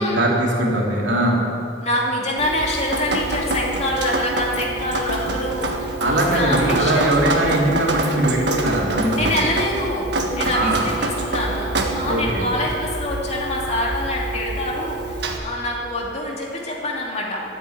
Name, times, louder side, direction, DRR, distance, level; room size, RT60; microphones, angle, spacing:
voice 1, 0.0-1.5 6.0-9.4 10.5-10.9 12.0-12.5, right 1 dB, 85° right, -3 dB, 3.1 m, -21 dB
voice 2, 1.8-7.3 9.2-17.4, left 1 dB, 35° left, -3 dB, 2.6 m, -25 dB
Drip, 2.4-15.4, right 2 dB, 65° right, 1.5 m, -26 dB
13.5 x 8.2 x 8.7 m, 2.7 s
head